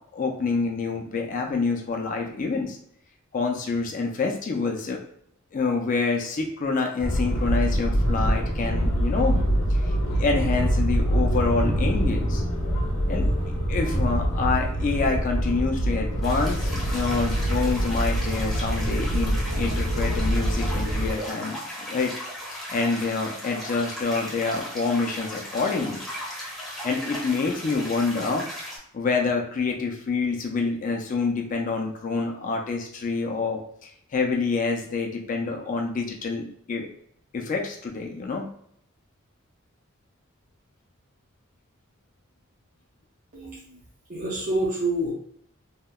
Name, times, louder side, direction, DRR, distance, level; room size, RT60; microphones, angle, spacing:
voice 1, 0.1-2.8 3.3-5.0 5.5-12.4 13.1-13.3 13.7-21.6 21.9-22.1 22.7-26.0 26.8-28.4 28.9-33.6 34.1-36.9 37.3-38.5, left 4 dB, 40° left, 2 dB, 0.3 m, -27 dB
sound 1, 7.0-21.1, equal, 75° left, 0.6 m, -24 dB
sound 2, 16.2-28.8, equal, ahead, 0.6 m, -37 dB
voice 2, 43.3-43.8 44.1-45.1, right 1 dB, 40° right, -7 dB, 0.5 m, -27 dB
2.7 x 2.1 x 2.2 m, 0.67 s
head